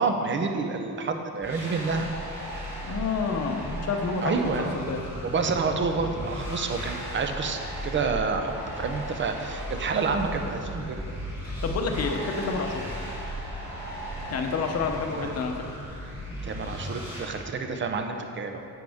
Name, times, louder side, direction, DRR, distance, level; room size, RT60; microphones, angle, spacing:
voice 1, 0.0-2.1 4.2-4.9 5.2-11.0 15.1-15.3 16.4-18.6, right 4 dB, 35° right, 5 dB, 0.6 m, -28 dB
sound 1, 1.4-17.2, equal, 5° right, 2.2 m, -36 dB
voice 2, 2.8-5.0 11.4-12.9 14.3-15.5, left 4 dB, 45° left, 4 dB, 0.7 m, -29 dB
sound 2, 5.8-16.9, right 1 dB, 85° right, 1.0 m, -45 dB
10.5 x 7.8 x 3.5 m, 2.7 s
wide cardioid pair, 175°, 35 cm